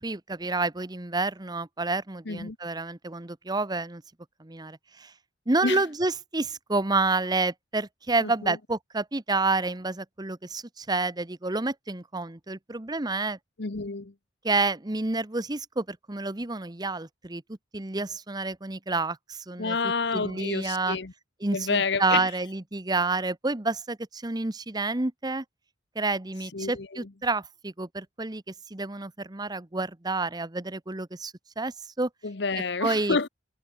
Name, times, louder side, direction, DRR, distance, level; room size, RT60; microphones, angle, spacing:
voice 1, 0.0-4.0 4.4-5.1 5.5-13.4 14.4-17.4 17.7-19.8 20.1-21.0 21.4-25.4 25.9-32.1 32.8-33.3, right 3 dB, 20° right, 1.0 m, -29 dB
voice 2, 2.3-2.6 5.6-5.8 8.2-8.6 13.6-14.1 19.6-21.1 21.5-22.3 26.5-27.1 32.2-33.3, left 4 dB, 65° left, 1.0 m, -29 dB
head